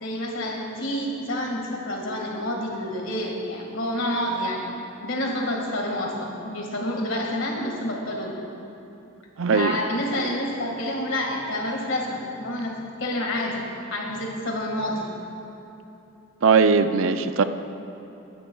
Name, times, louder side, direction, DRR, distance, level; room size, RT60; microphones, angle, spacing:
voice 1, 0.0-4.7 5.0-8.4 9.5-15.1, left 1 dB, 60° left, 0 dB, 1.8 m, -28 dB
voice 2, 9.4-9.8 16.4-17.4, right 5 dB, 65° right, 10 dB, 0.5 m, -19 dB
24.5 x 10.0 x 2.3 m, 2.9 s
head